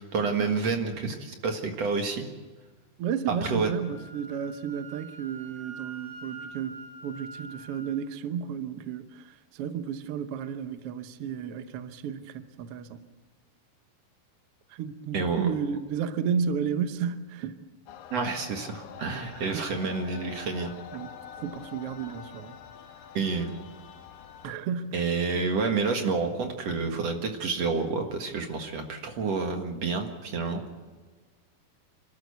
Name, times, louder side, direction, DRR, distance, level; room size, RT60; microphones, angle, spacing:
voice 1, 0.0-2.3 3.4-3.7 15.1-15.5 18.1-20.7 23.1-23.5 24.9-30.6, right 4 dB, 55° right, 2.5 m, -29 dB
voice 2, 3.0-13.0 14.7-17.6 19.3-19.6 20.9-21.1 21.4-22.5 24.4-25.0 25.3-25.6, right 7 dB, 70° right, 1.4 m, -33 dB
Wind instrument woodwind instrument, 3.8-7.9, right 3 dB, 35° right, 6.9 m, -45 dB
sound 1, 17.9-24.5, left 8 dB, 80° left, 2.6 m, -46 dB
27.5 x 13.0 x 8.1 m
omnidirectional pair, 4.0 m